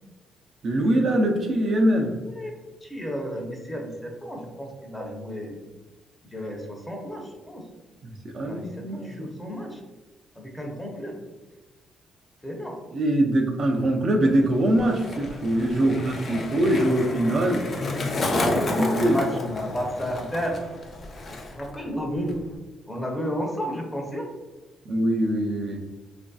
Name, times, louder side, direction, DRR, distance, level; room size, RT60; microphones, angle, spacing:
voice 1, 0.6-2.1 8.0-9.3 12.9-17.6 19.0-19.3 24.9-25.8, right 1 dB, 55° right, 1 dB, 0.4 m, -23 dB
voice 2, 2.8-5.6 6.3-7.7 8.4-9.8 10.4-11.2 12.4-12.8 15.8-16.2 18.3-20.6 21.3-22.4 22.9-24.3, equal, 10° left, 1 dB, 0.7 m, -32 dB
Skateboard, 14.2-21.8 22.0-22.5, left 2 dB, 45° left, 0.5 m, -31 dB
3.0 x 2.5 x 2.3 m, 1.2 s
cardioid pair, 90°, 0 cm